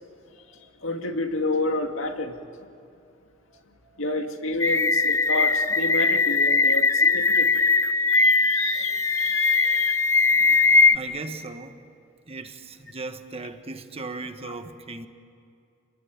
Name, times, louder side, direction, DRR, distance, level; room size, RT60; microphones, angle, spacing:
voice 1, 0.8-2.4 4.0-7.6 8.1-10.0 10.5-10.6 14.5-14.6, left 2 dB, 70° left, 4 dB, 2.2 m, -30 dB
voice 2, 3.5-4.0 8.7-8.8 9.4-9.8 10.3-10.4 10.9-11.8 12.3-15.1, right 3 dB, 30° right, 8 dB, 1.3 m, -38 dB
sound 1, 4.6-11.0, left 4 dB, 15° left, 0.6 m, -20 dB
28.0 x 20.5 x 9.6 m, 2.5 s
head